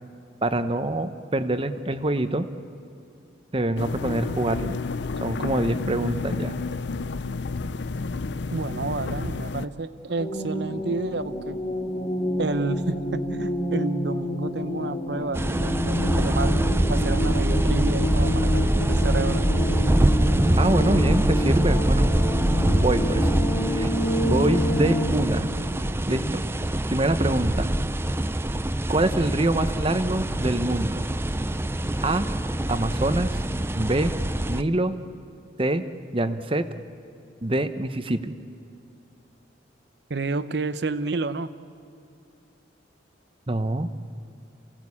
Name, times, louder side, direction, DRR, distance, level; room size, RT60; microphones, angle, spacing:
voice 1, 0.4-2.5 3.5-4.8 5.2-6.6 20.6-22.1 22.8-23.3 23.7-23.9 24.2-25.5 26.1-26.4 26.9-27.7 28.9-31.0 32.0-32.3 32.7-33.4 33.7-34.1 34.5-35.0 35.6-35.8 36.1-36.7 37.4-38.3 43.5-43.9, right 1 dB, 30° right, 10 dB, 0.9 m, -25 dB
sound 1, 3.8-9.7, left 3 dB, 65° left, 0.6 m, -30 dB
voice 2, 8.5-11.6 12.4-19.5 40.1-41.5, right 3 dB, 60° right, 13 dB, 0.8 m, -30 dB
sound 2, 10.2-25.1, equal, 40° left, 3.0 m, -28 dB
sound 3, 15.3-34.6, right 1 dB, 10° right, 0.5 m, -24 dB
28.0 x 17.5 x 8.6 m, 2.7 s
head